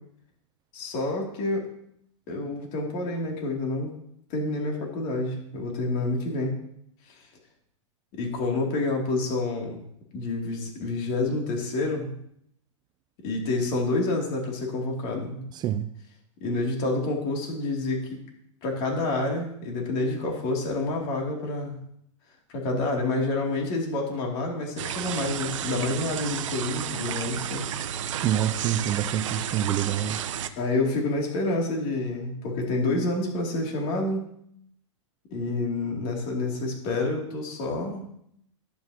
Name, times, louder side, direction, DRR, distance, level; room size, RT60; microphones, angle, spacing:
voice 1, 0.7-1.7 2.3-3.9 4.3-6.6 7.1-7.2 8.1-9.8 10.1-12.1 13.2-15.5 16.4-18.0 18.6-21.8 22.5-27.7 30.6-34.3 35.3-38.0, left 2 dB, 45° left, 2.8 m, -28 dB
voice 2, 15.5-15.9 28.2-30.2, right 11 dB, 25° right, 0.4 m, -27 dB
sound 1, 24.8-30.5, right 9 dB, 70° right, 0.7 m, -32 dB
11.0 x 8.3 x 2.9 m
hypercardioid pair, 120°, 16 cm